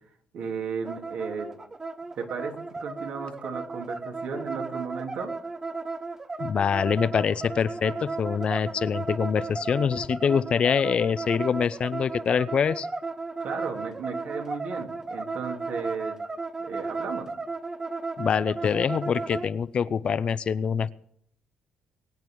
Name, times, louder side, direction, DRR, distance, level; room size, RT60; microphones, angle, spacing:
voice 1, 0.3-1.5 2.1-5.3 13.4-16.2 16.6-17.3, right 5 dB, 70° right, 2 dB, 3.0 m, -34 dB
sound 1, 0.8-19.5, right 3 dB, 20° right, 0.8 m, -34 dB
voice 2, 6.4-12.9 18.2-20.9, left 7 dB, 45° left, 16 dB, 0.6 m, -25 dB
23.5 x 9.0 x 4.7 m, 0.69 s
cardioid pair, 100°, 2 cm